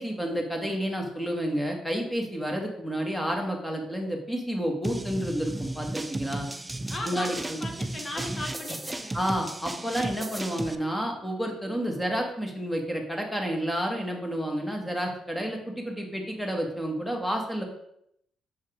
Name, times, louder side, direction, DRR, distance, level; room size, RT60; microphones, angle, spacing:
voice 1, 0.0-6.5 7.0-7.6 9.1-17.6, equal, 5° left, 2 dB, 1.6 m, -30 dB
sound 1, 4.8-10.8, right 1 dB, 15° right, 0.4 m, -35 dB
voice 2, 6.9-9.2, left 1 dB, 35° left, 2 dB, 1.6 m, -37 dB
6.2 x 4.0 x 5.0 m, 0.74 s
cardioid pair, 90°, 0 cm